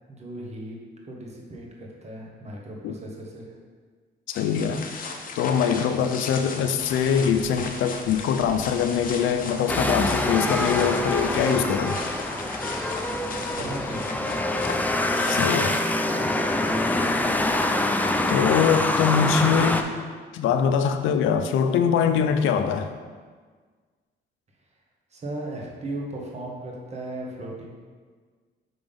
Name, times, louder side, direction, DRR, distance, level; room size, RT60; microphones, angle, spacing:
voice 1, 0.1-0.8 1.0-3.5 13.5-14.4 25.1-27.7, right 1 dB, 35° right, -2 dB, 1.2 m, -36 dB
voice 2, 4.3-4.8 5.3-12.0 15.3-15.8 18.3-19.8 20.3-22.9, left 7 dB, 85° left, 9 dB, 0.5 m, -23 dB
Walking in the woods, 4.3-16.3, left 4 dB, 45° left, 0.7 m, -37 dB
sound 1, 9.7-19.8, left 1 dB, 10° left, 0.4 m, -25 dB
6.0 x 3.5 x 5.3 m, 1.5 s
cardioid pair, 90°, 20 cm